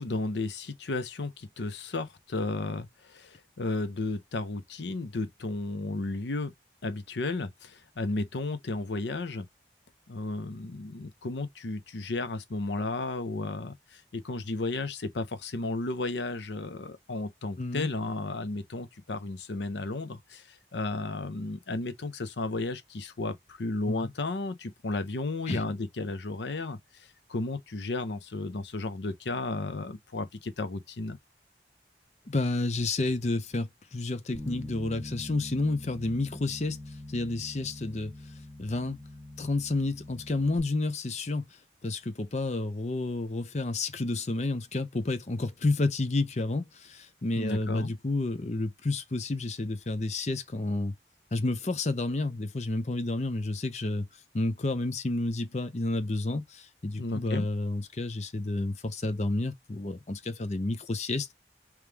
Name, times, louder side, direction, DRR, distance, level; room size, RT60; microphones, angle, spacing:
voice 1, 0.0-6.5 6.8-9.5 10.1-20.4 20.7-26.8 27.3-31.2 47.4-47.9 57.0-57.5, left 2 dB, 80° left, 0.7 m, -33 dB
voice 2, 17.6-17.9 23.9-24.1 25.5-25.6 32.3-38.3 38.6-39.0 39.4-50.9 51.3-54.1 54.3-61.3, left 2 dB, 40° left, 0.6 m, -30 dB
Bass guitar, 34.3-40.6, left 1 dB, 20° left, 1.5 m, -43 dB
3.4 x 3.1 x 3.4 m
head